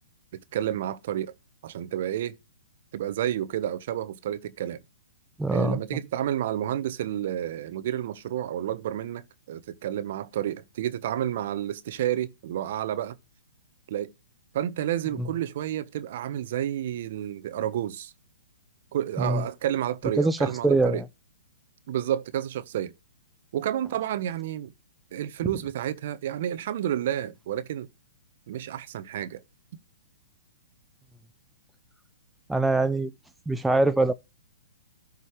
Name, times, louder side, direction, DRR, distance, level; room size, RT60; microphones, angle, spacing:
voice 1, 0.3-1.3 1.6-2.4 2.9-4.8 5.5-13.1 13.9-14.1 14.5-18.1 18.9-21.0 21.9-22.9 23.5-24.7 25.1-27.9 28.5-29.4, right 11 dB, 55° right, 1.1 m, -30 dB
voice 2, 5.4-5.8 15.2-15.3 19.2-19.4 20.2-21.0 32.5-33.1 33.5-34.1, right 2 dB, 5° right, 0.5 m, -23 dB
13.5 x 5.5 x 3.2 m
hypercardioid pair, 125°, 0 cm